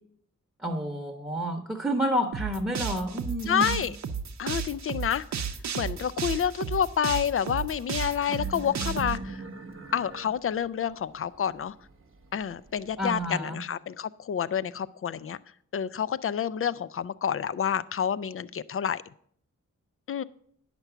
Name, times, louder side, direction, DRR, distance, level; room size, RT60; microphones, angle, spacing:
voice 1, 0.6-3.8 13.0-13.6, equal, 5° right, 3 dB, 0.9 m, -29 dB
sound 1, 2.3-9.2, right 6 dB, 60° right, 0.6 m, -33 dB
voice 2, 3.5-4.0 4.4-5.2 5.8-9.4 9.9-11.7 12.3-15.4 15.7-19.0 20.1-20.2, left 8 dB, 45° left, 17 dB, 0.4 m, -28 dB
sound 2, 8.3-13.3, right 3 dB, 45° right, 1.1 m, -42 dB
10.0 x 6.0 x 6.7 m, 0.63 s
wide cardioid pair, 135°, 30 cm